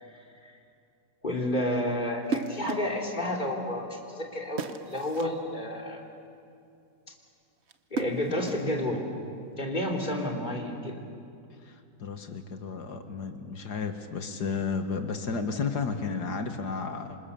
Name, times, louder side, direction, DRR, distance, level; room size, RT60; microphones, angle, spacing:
voice 1, 1.2-6.0 7.9-9.0 9.6-11.0, left 1 dB, 25° left, 0 dB, 3.2 m, -30 dB
sound 1, 2.2-3.0 4.6-5.4 7.7-8.8, right 4 dB, 45° right, 0.9 m, -35 dB
voice 2, 11.6-17.2, left 5 dB, 60° left, 7 dB, 2.0 m, -33 dB
27.5 x 26.0 x 7.0 m, 2.5 s
omnidirectional pair, 2.1 m